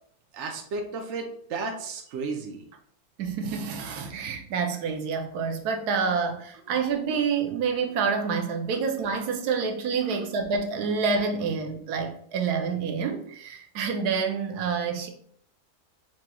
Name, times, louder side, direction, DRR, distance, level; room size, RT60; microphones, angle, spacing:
voice 1, 0.3-2.6 8.7-8.8 10.0-10.2, right 4 dB, 65° right, 2 dB, 0.8 m, -34 dB
voice 2, 3.2-15.1, right 5 dB, 80° right, 4 dB, 1.2 m, -28 dB
5.9 x 3.0 x 2.2 m, 0.63 s
omnidirectional pair, 1.7 m